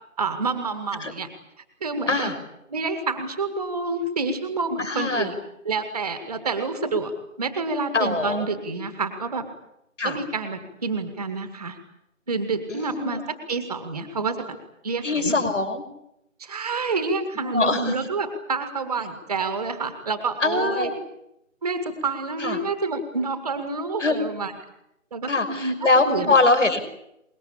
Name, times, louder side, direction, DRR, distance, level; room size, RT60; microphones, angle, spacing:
voice 1, 0.2-1.3 1.8-2.3 2.7-5.4 5.6-7.1 7.4-9.5 10.0-11.8 12.3-13.2 13.5-14.6 14.8-15.5 16.4-20.9 21.6-24.5 25.1-25.7 26.0-26.3, right 4 dB, 5° right, 7 dB, 1.1 m, -28 dB
voice 2, 4.8-5.3 7.9-8.5 10.0-10.2 12.7-13.2 15.0-15.8 17.4-17.9 20.4-20.9 22.4-22.6 24.0-24.2 25.3-26.8, left 3 dB, 60° left, 9 dB, 6.0 m, -22 dB
25.0 x 22.0 x 8.6 m, 0.80 s
figure-of-eight pair, 165°, 40 cm